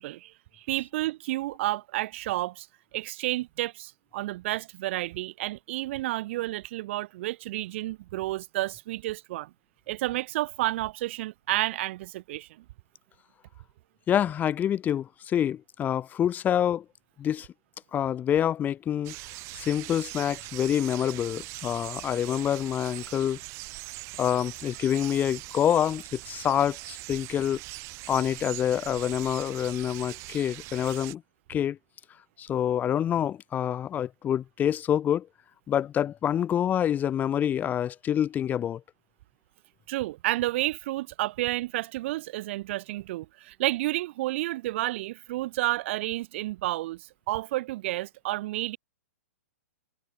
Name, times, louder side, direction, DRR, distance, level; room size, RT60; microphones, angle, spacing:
voice 1, 0.0-2.7 2.9-9.5 9.9-12.5 39.9-48.8, right 17 dB, 50° right, 1.2 m, -31 dB
voice 2, 14.1-16.8 17.2-17.5 17.9-19.2 19.5-23.4 24.2-27.6 28.1-31.2 31.5-31.8 32.4-35.3 35.7-38.8, left 10 dB, 20° left, 2.3 m, -27 dB
sound 1, 19.0-31.1, right 24 dB, 35° right, 2.7 m, -41 dB
hypercardioid pair, 135°, 8 cm